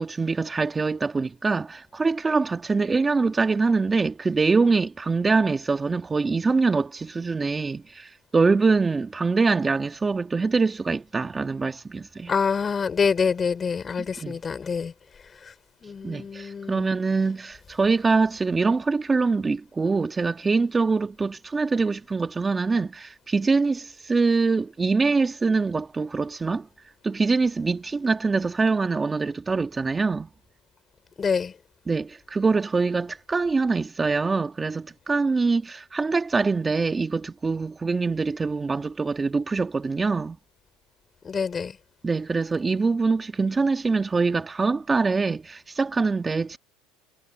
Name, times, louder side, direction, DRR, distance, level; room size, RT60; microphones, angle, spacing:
voice 1, 0.0-12.3 14.2-14.4 16.0-26.7 27.0-30.3 31.9-40.4 42.0-46.6, right 4 dB, 20° right, 1.6 m, -24 dB
voice 2, 12.3-14.9 15.8-16.9 31.2-31.5 41.2-41.8, left 6 dB, 25° left, 4.4 m, -26 dB
supercardioid pair, 105°, 0 cm